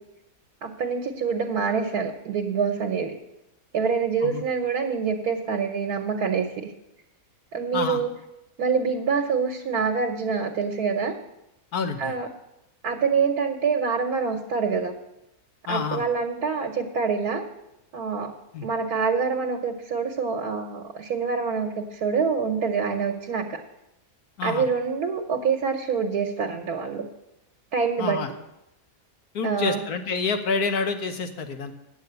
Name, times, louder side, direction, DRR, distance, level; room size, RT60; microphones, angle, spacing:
voice 1, 0.6-3.2 3.7-6.7 7.5-8.1 8.6-11.2 12.0-12.3 12.8-14.9 15.7-17.5 17.9-18.3 18.6-23.6 24.4-27.1 27.7-28.3 29.4-29.8, right 5 dB, 85° right, 4 dB, 1.5 m, -26 dB
voice 2, 11.7-12.1 15.7-16.0 18.5-18.7 24.4-24.6 28.0-28.3 29.3-31.7, left 4 dB, 90° left, 6 dB, 1.6 m, -28 dB
8.9 x 8.3 x 8.0 m, 0.90 s
omnidirectional pair, 1.6 m